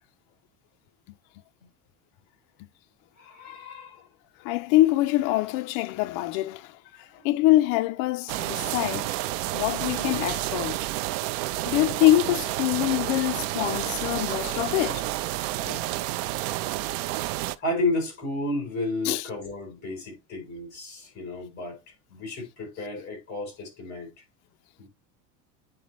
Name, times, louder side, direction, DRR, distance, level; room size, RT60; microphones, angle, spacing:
voice 1, 3.2-4.1 7.1-7.3 17.6-24.2 24.8-24.9, left 2 dB, 25° left, 3.6 m, -32 dB
voice 2, 4.4-6.8 7.2-9.1 9.5-10.8 11.7-15.1 15.6-15.8 19.0-19.3, left 16 dB, 55° left, 0.5 m, -24 dB
sound 1, 8.3-17.6, right 16 dB, 85° right, 0.5 m, -30 dB
8.9 x 4.1 x 3.0 m
cardioid pair, 175°, 38 cm